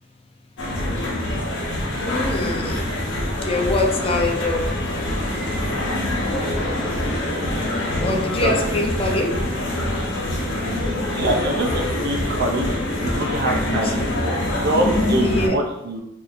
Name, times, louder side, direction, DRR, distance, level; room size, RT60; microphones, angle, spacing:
sound 1, 0.6-15.5, left 1 dB, 65° left, 0.9 m, -25 dB
voice 1, 2.1-2.9 3.5-4.7 8.0-9.5 13.8-13.9 15.2-15.5, left 2 dB, 30° left, 1 dB, 0.5 m, -24 dB
sound 2, 3.2-9.5, right 1 dB, 10° right, 1.3 m, -37 dB
voice 2, 8.4-8.7 11.1-12.7 13.0-16.0, right 1 dB, 55° right, 1 dB, 0.6 m, -24 dB
4.0 x 2.7 x 2.4 m, 0.85 s
head